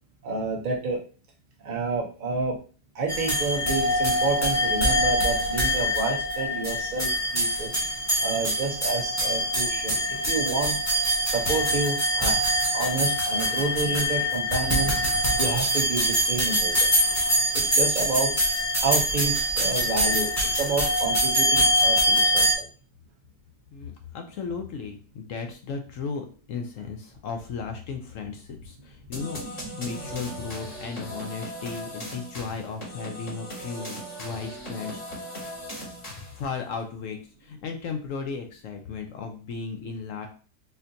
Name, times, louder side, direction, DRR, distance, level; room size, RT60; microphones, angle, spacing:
voice 1, 0.2-1.0 1.6-2.6 2.9-7.7 8.2-10.8 11.2-12.4 12.7-15.0 15.4-16.9 17.5-18.3 18.8-22.7, right 3 dB, 80° right, 0 dB, 0.4 m, -29 dB
sound 1, 3.1-22.5, equal, 15° left, 0.6 m, -24 dB
voice 2, 23.7-35.0 36.0-40.3, left 5 dB, 70° left, 4 dB, 0.7 m, -35 dB
sound 2, 29.1-36.5, equal, 40° left, 2.1 m, -38 dB
4.1 x 2.7 x 2.6 m, 0.38 s
omnidirectional pair, 1.8 m